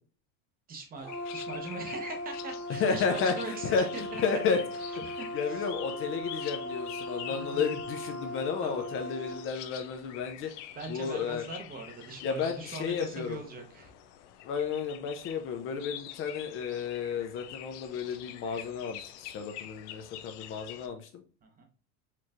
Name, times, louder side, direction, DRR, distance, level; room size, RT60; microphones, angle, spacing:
voice 1, 0.7-4.2 4.8-5.7 7.3-7.6 8.6-8.9 10.7-13.9 21.4-21.6, right 3 dB, 25° right, 4 dB, 0.8 m, -42 dB
sound 1, 1.0-20.9, left 12 dB, 85° left, 0.6 m, -46 dB
Brass instrument, 1.0-9.4, left 1 dB, 55° right, 1.1 m, -38 dB
voice 2, 2.8-4.6 5.3-10.5 10.9-11.4 12.2-13.4 14.4-21.1, left 6 dB, 35° left, 5 dB, 0.5 m, -32 dB
4.4 x 3.0 x 2.4 m, 0.39 s
cardioid pair, 145°, 35 cm